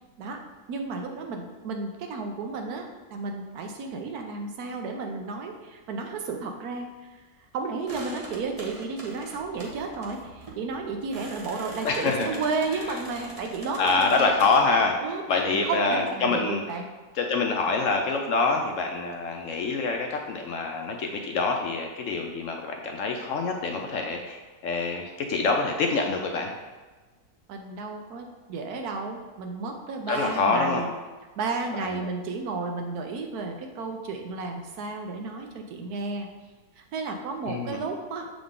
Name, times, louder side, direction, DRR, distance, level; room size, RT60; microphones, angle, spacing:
voice 1, 0.7-6.9 7.5-14.4 15.0-16.9 27.5-30.9 31.4-36.3 36.8-38.3, right 4 dB, 75° right, 3 dB, 1.2 m, -32 dB
sound 1, 7.9-14.6, right 2 dB, 30° right, 0.8 m, -43 dB
voice 2, 11.8-12.3 13.8-15.0 15.3-16.6 17.2-26.5 30.1-30.8 31.7-31.9 37.5-37.8, left 4 dB, 70° left, 3 dB, 0.8 m, -26 dB
6.9 x 3.8 x 3.6 m, 1.3 s
omnidirectional pair, 1.7 m